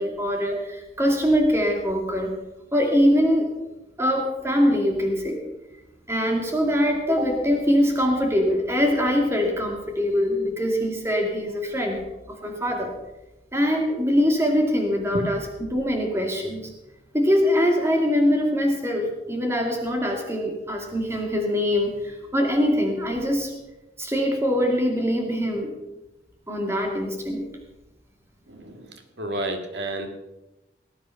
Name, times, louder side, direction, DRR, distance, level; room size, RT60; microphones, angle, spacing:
voice 1, 0.0-2.3 2.7-3.5 4.0-5.4 6.1-12.0 12.3-12.9 13.5-15.4 15.7-16.7 17.1-23.5 24.0-25.7 26.5-27.5, equal, 15° right, 2 dB, 2.4 m, -23 dB
voice 2, 28.5-30.1, right 1 dB, 80° right, 5 dB, 2.0 m, -31 dB
18.5 x 9.5 x 5.8 m, 1.0 s
head